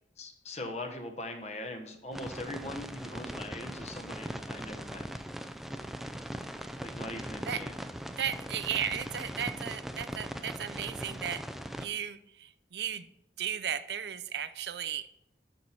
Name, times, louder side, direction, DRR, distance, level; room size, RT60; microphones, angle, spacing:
voice 1, 0.2-5.1 6.8-7.7, left 1 dB, 40° left, 4 dB, 1.2 m, -41 dB
sound 1, 2.1-11.9, equal, ahead, 0.4 m, -40 dB
voice 2, 8.2-11.4 11.8-13.1 13.4-15.1, right 9 dB, 70° right, 13 dB, 0.5 m, -35 dB
12.5 x 4.6 x 4.2 m, 0.76 s
head